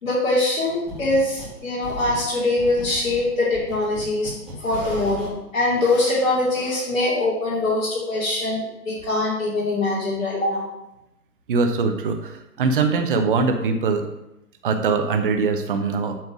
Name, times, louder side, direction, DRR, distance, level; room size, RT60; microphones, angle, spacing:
voice 1, 0.0-4.3 4.6-10.7, left 2 dB, 55° left, -6 dB, 2.8 m, -23 dB
sound 1, 0.9-1.6 1.8-5.3, equal, ahead, 1.5 m, -36 dB
voice 2, 11.5-14.0 14.6-16.2, right 4 dB, 35° right, 6 dB, 0.8 m, -22 dB
8.3 x 3.5 x 6.1 m, 0.90 s
figure-of-eight pair, 135°, 48 cm